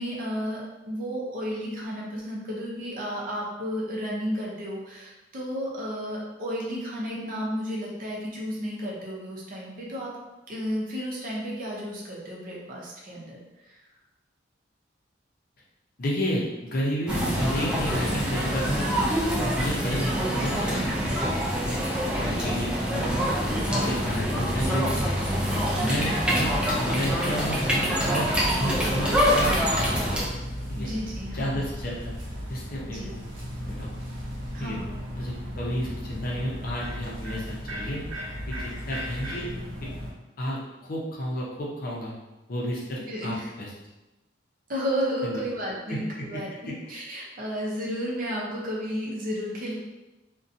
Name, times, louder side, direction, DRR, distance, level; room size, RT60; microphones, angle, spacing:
voice 1, 0.0-10.1 10.5-13.8 25.8-26.2 30.7-31.7 32.9-33.2 34.5-35.0 43.1-43.5 44.7-49.7, equal, 45° right, -4 dB, 0.6 m, -32 dB
voice 2, 16.0-18.8 19.4-21.2 21.6-21.8 22.2-25.2 25.8-28.3 28.6-30.0 30.7-30.9 31.3-32.1 32.5-33.3 33.7-34.0 34.6-34.8 35.1-38.0 38.5-39.5 40.4-42.1 42.5-43.7 45.2-45.4, equal, 50° left, -4 dB, 0.6 m, -31 dB
sound 1, 17.1-30.3, equal, 5° right, 0.3 m, -25 dB
sound 2, 29.7-40.1, equal, 85° right, 0.6 m, -36 dB
2.7 x 2.2 x 2.5 m, 1.0 s
head